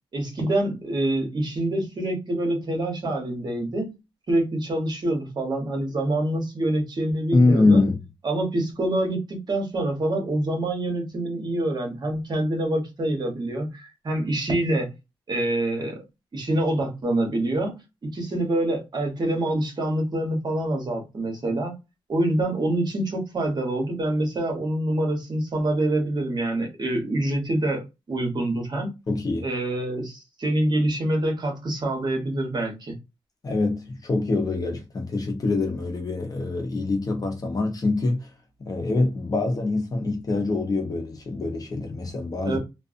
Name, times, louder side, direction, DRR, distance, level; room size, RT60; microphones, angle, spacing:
voice 1, 0.1-4.0 4.3-7.8 8.2-14.9 15.3-16.0 16.3-21.7 22.1-28.9 29.4-32.9 42.4-42.6, right 1 dB, 45° right, 1.1 m, -26 dB
voice 2, 7.3-8.0 29.1-29.5 33.4-38.3 38.6-42.6, left 3 dB, 40° left, 0.8 m, -24 dB
2.5 x 2.4 x 2.5 m
wide cardioid pair, 105°, 10 cm